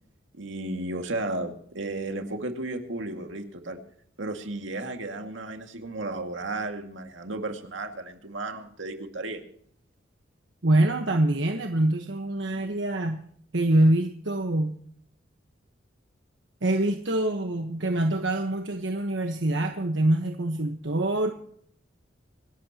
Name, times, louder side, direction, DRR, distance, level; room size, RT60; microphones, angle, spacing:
voice 1, 0.3-3.8 4.2-9.4, right 2 dB, 85° right, 5 dB, 2.1 m, -34 dB
voice 2, 10.6-13.2 13.5-14.8 16.6-21.3, right 1 dB, 70° right, 4 dB, 1.2 m, -25 dB
26.0 x 12.5 x 2.9 m, 0.64 s
head